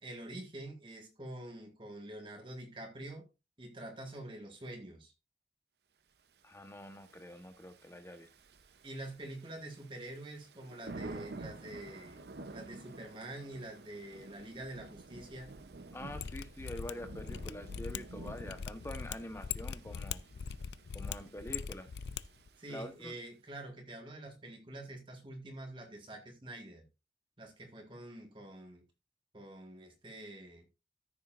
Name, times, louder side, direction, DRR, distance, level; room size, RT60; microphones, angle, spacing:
voice 1, 0.0-3.3 3.6-5.1 8.8-12.2 12.5-15.6 22.6-26.8 27.4-28.8 29.3-30.7, right 1 dB, 30° right, 1.7 m, -46 dB
voice 2, 6.4-8.3 15.9-20.2 20.9-21.9 22.7-23.2, left 1 dB, 15° left, 1.1 m, -46 dB
Thunder / Rain, 6.5-23.1, right 2 dB, 70° right, 0.7 m, -51 dB
Mechanisms, 16.1-22.2 22.5-22.6, left 7 dB, 75° left, 0.4 m, -41 dB
13.5 x 6.7 x 2.5 m
head